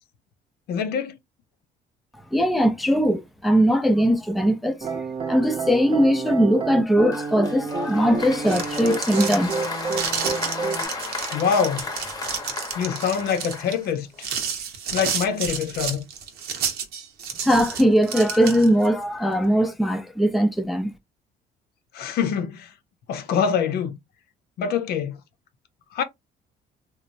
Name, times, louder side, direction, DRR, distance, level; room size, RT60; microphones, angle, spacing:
voice 1, 0.7-1.2 11.3-11.9 12.8-14.3 14.9-16.1 21.9-22.7 23.1-24.0 24.6-25.2 25.9-26.0, left 7 dB, 70° left, 0.6 m, -24 dB
voice 2, 2.3-4.9 5.3-9.5 17.4-20.9, equal, ahead, 0.4 m, -20 dB
sound 1, 4.8-10.9, right 4 dB, 30° right, 0.7 m, -29 dB
Applause, 7.1-14.2, left 3 dB, 20° left, 0.8 m, -34 dB
sound 2, 8.5-18.9, right 7 dB, 70° right, 0.8 m, -31 dB
3.0 x 2.0 x 2.6 m
cardioid pair, 110°, 17 cm